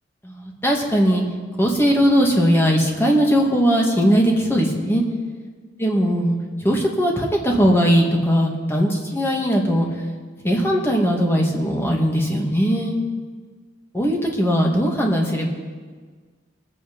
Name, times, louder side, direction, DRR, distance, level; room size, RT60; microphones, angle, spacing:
voice 1, 0.3-1.2 1.6-5.0 5.8-6.4 6.6-9.9 10.4-12.9 13.9-15.5, equal, 10° left, -1 dB, 1.9 m, -19 dB
21.5 x 8.6 x 5.3 m, 1.5 s
head